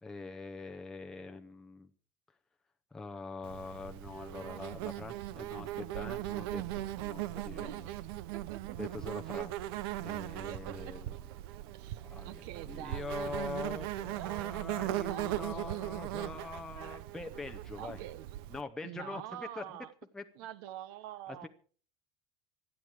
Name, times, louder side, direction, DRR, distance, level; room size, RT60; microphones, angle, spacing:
voice 1, 0.0-1.9 2.9-7.9 8.8-9.5 10.0-11.1 11.9-18.0 18.5-19.6 20.1-20.2 21.3-21.5, left 3 dB, 5° left, 4 dB, 0.7 m, -43 dB
Insect, 3.4-18.6, right 15 dB, 85° right, 0.8 m, -39 dB
voice 2, 7.6-8.0 8.3-8.8 10.5-11.0 11.7-13.3 14.1-14.6 15.1-15.9 16.7-17.0 17.8-18.3 18.8-19.9 20.3-21.5, right 13 dB, 70° right, 16 dB, 1.2 m, -46 dB
25.5 x 8.9 x 4.8 m, 0.42 s
cardioid pair, 175°, 12 cm